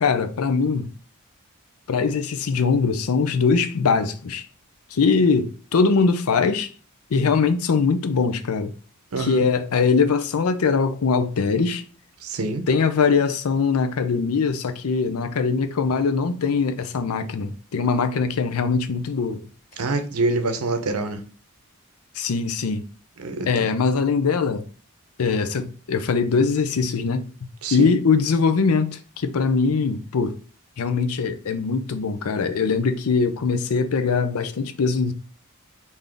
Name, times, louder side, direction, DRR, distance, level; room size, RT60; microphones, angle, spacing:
voice 1, 0.0-0.9 1.9-4.5 4.9-6.7 7.1-8.7 9.2-11.8 12.7-19.4 22.1-22.9 23.5-24.6 25.2-27.3 27.7-30.4 30.8-35.1, left 5 dB, 80° left, 0.5 m, -22 dB
voice 2, 9.1-9.4 12.2-12.7 19.8-21.2 23.2-23.5 27.6-27.9, right 2 dB, 80° right, 0.6 m, -25 dB
3.7 x 2.6 x 3.4 m
head